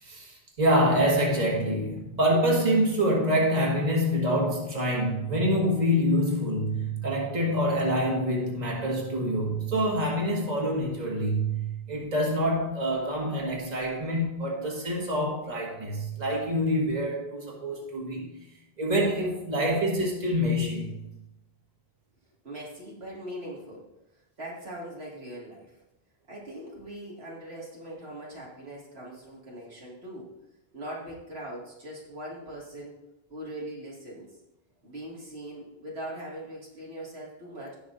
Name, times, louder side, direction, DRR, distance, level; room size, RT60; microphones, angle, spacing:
voice 1, 0.0-18.3 18.8-21.0, equal, 45° right, -2 dB, 2.0 m, -26 dB
voice 2, 22.4-23.9 24.4-25.7 26.3-30.3 30.7-33.0 33.3-34.3 34.8-37.8, right 1 dB, 85° right, -4 dB, 2.3 m, -41 dB
17.5 x 6.1 x 2.6 m, 0.89 s
omnidirectional pair, 1.0 m